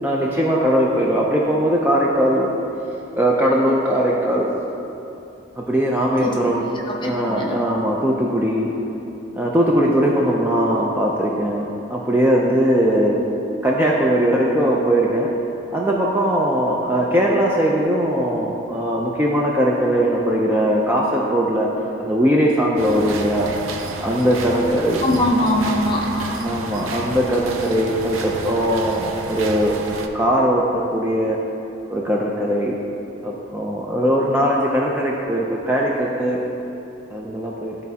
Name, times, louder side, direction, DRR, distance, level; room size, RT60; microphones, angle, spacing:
voice 1, 0.0-2.5 3.1-4.5 5.6-6.6 7.0-8.7 9.4-13.2 13.6-15.3 15.7-21.7 22.0-23.5 24.0-25.1 26.4-29.8 30.1-31.4 31.9-32.8 33.2-36.4 37.1-37.8, equal, 10° right, -4 dB, 0.3 m, -20 dB
voice 2, 7.0-7.7 25.0-26.6, left 1 dB, 25° left, -3 dB, 0.7 m, -21 dB
sound 1, 22.8-30.1, right 3 dB, 90° right, 0.5 m, -31 dB
11.5 x 4.0 x 2.8 m, 2.9 s
head